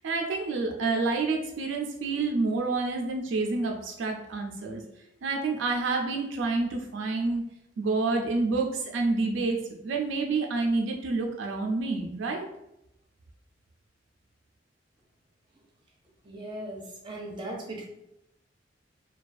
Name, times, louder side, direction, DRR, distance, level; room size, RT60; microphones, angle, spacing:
voice 1, 0.0-4.8 5.2-7.4 7.8-9.6 9.8-12.5, right 3 dB, 80° right, 2 dB, 0.4 m, -28 dB
voice 2, 16.2-17.8, right 1 dB, 25° right, -2 dB, 0.5 m, -38 dB
2.3 x 2.2 x 2.5 m, 0.84 s
head